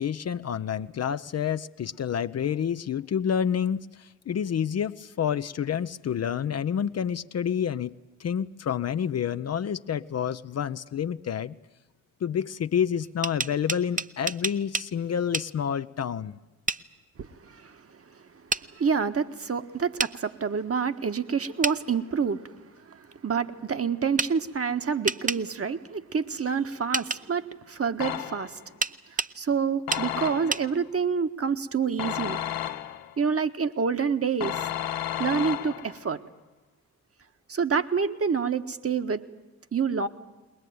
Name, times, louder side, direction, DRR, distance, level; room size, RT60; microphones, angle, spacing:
voice 1, 0.0-11.5 12.2-16.4, left 8 dB, 40° left, 12 dB, 0.7 m, -29 dB
sound 1, 13.0-14.9 15.3-15.5 16.7-16.8 18.5-18.7 20.0-20.1 21.6-21.8 24.2-24.3 25.1-25.4 26.9-27.2 28.8-29.3 29.9-30.1 30.5-30.7, right 4 dB, 20° right, 0.7 m, -28 dB
voice 2, 17.2-17.8 18.8-22.4 23.2-28.6 29.3-32.4 33.2-34.5 35.2-36.2 37.5-39.2 39.7-40.1, right 6 dB, 35° right, 9 dB, 1.4 m, -27 dB
sound 2, 28.0-28.7 29.9-30.8 32.0-33.2 34.4-36.1, left 11 dB, 65° left, 1.0 m, -32 dB
21.5 x 20.0 x 9.4 m, 1.1 s
hypercardioid pair, 45°, 39 cm